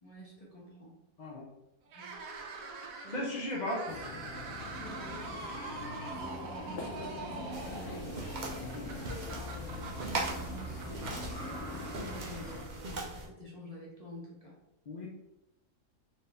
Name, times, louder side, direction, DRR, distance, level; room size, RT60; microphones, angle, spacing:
voice 1, 0.0-1.0 1.9-2.1 3.0-3.5 4.8-9.1 9.5-14.6, equal, 30° left, -6 dB, 0.9 m, -48 dB
sound 1, 1.9-13.2, right 4 dB, 70° right, 1.1 m, -45 dB
voice 2, 3.1-4.1 8.6-8.9 14.9-15.1, left 1 dB, 50° left, -3 dB, 0.5 m, -36 dB
sound 2, 3.9-12.7, left 2 dB, 65° left, 1.0 m, -43 dB
sound 3, 7.5-13.3, right 2 dB, 45° right, 0.6 m, -40 dB
4.3 x 2.7 x 3.3 m, 0.91 s
omnidirectional pair, 1.5 m